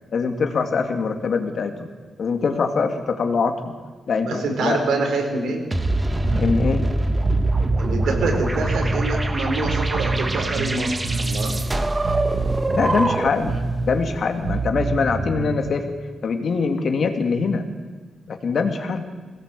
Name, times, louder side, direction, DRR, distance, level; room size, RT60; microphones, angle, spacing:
voice 1, 0.1-1.9 2.2-3.7 4.1-4.8 6.3-6.8 12.7-13.6 13.8-15.9 16.2-17.6 18.3-19.1, left 5 dB, 50° left, 5 dB, 2.3 m, -23 dB
voice 2, 4.3-5.7 7.8-11.6, right 3 dB, 85° right, 3 dB, 4.6 m, -25 dB
sound 1, 5.7-13.5, right 1 dB, 20° right, 1.2 m, -24 dB
Bass guitar, 6.2-15.7, right 3 dB, 45° right, 1.6 m, -27 dB
22.0 x 18.0 x 8.4 m, 1.4 s
wide cardioid pair, 150°, 0 cm